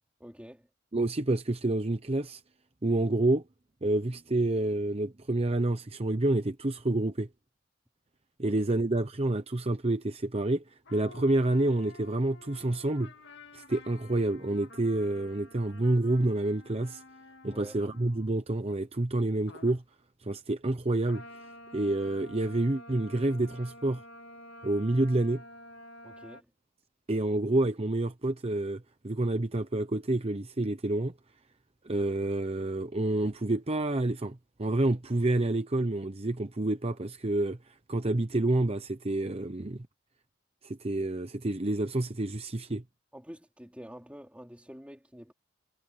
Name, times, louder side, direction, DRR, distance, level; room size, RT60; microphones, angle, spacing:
voice 1, 0.2-0.7 8.4-8.6 17.5-17.8 26.0-26.5 43.1-45.3, equal, 5° right, 3.7 m, -47 dB
voice 2, 0.9-2.4 2.8-3.4 3.8-7.3 8.4-10.6 10.9-13.1 13.5-17.0 17.4-19.8 20.2-21.2 21.7-24.0 24.6-25.4 27.1-31.1 31.8-37.6 37.9-39.9 40.6-42.8, right 2 dB, 30° right, 0.9 m, -28 dB
sound 1, 10.8-18.3 19.5-19.8 21.1-26.4, left 1 dB, 60° left, 2.0 m, -50 dB
head